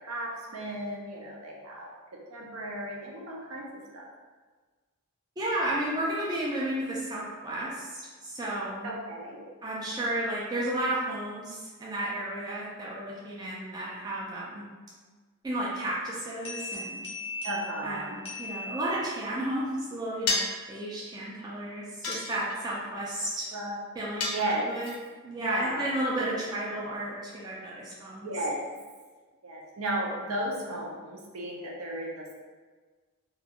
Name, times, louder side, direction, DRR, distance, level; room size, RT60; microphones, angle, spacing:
voice 1, 0.0-1.9 2.3-3.7 3.9-4.1 8.8-9.5 13.4-13.5 17.4-18.2 23.5-23.8 24.3-24.6 25.4-25.9 26.2-26.3 28.2-28.6 29.4-32.3, right 1 dB, 75° right, -2 dB, 0.6 m, -34 dB
voice 2, 5.4-8.9 9.6-14.6 15.4-17.0 17.8-20.4 20.7-23.5 24.0-24.4 24.7-24.9 25.2-28.3, right 1 dB, 15° right, -6 dB, 0.3 m, -33 dB
sound 1, 16.5-19.4, left 2 dB, 25° left, 0.6 m, -39 dB
sound 2, 20.3-20.7 22.0-22.8 24.2-24.9, left 3 dB, 80° left, 0.5 m, -30 dB
2.4 x 2.3 x 2.8 m, 1.4 s
head